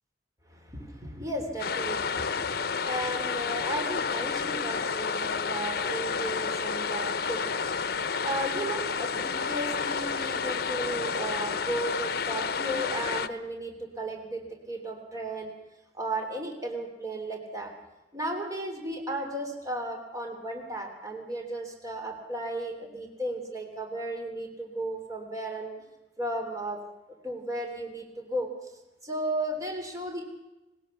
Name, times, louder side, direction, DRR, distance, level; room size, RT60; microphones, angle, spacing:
voice 1, 0.5-15.5 15.9-17.7 18.1-25.8 26.2-26.8 27.1-28.5 29.0-30.3, right 1 dB, 20° right, 2 dB, 3.2 m, -35 dB
sound 1, 1.6-13.3, left 5 dB, 60° left, 0.8 m, -30 dB
20.0 x 20.0 x 7.1 m, 1.0 s
head